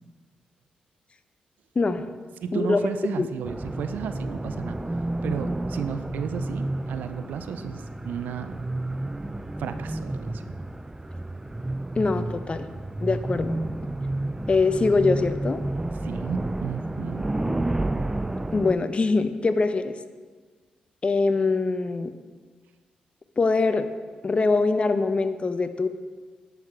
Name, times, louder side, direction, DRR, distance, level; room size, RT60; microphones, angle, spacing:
voice 1, 1.8-2.1 2.5-2.8 3.2-3.3 12.0-12.7 13.0-13.6 14.5-15.6 18.5-19.9 21.0-22.1 23.4-23.9 24.2-25.9, left 3 dB, 40° left, 10 dB, 0.7 m, -23 dB
voice 2, 2.4-4.8 5.2-8.7 9.6-10.4 16.0-17.2, right 7 dB, 80° right, 10 dB, 0.5 m, -33 dB
sound 1, 3.4-18.8, right 2 dB, 15° right, 0.4 m, -31 dB
11.0 x 5.9 x 4.5 m, 1.5 s
supercardioid pair, 50°, 3 cm